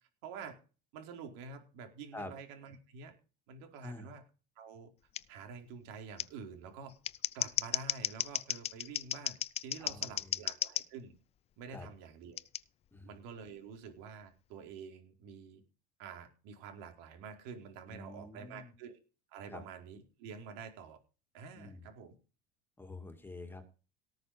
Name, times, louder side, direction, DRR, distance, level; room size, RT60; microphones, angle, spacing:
voice 1, 0.2-0.6 0.9-3.1 3.5-4.2 4.6-4.9 5.3-6.9 7.3-11.1 11.6-12.4 13.0-15.6 16.0-19.0 19.3-21.0 21.3-22.1, right 5 dB, 75° right, 5 dB, 4.4 m, -48 dB
voice 2, 3.8-4.1 9.8-10.4 11.7-11.9 12.9-13.1 17.9-18.7 19.5-19.6 21.5-21.9 22.8-23.6, left 2 dB, 10° left, 7 dB, 2.3 m, -47 dB
Scissors, 5.1-5.2 6.2-6.3 6.9-10.8 12.4-12.6, left 11 dB, 30° left, 0.5 m, -35 dB
18.0 x 6.7 x 5.1 m, 0.35 s
cardioid pair, 150°, 21 cm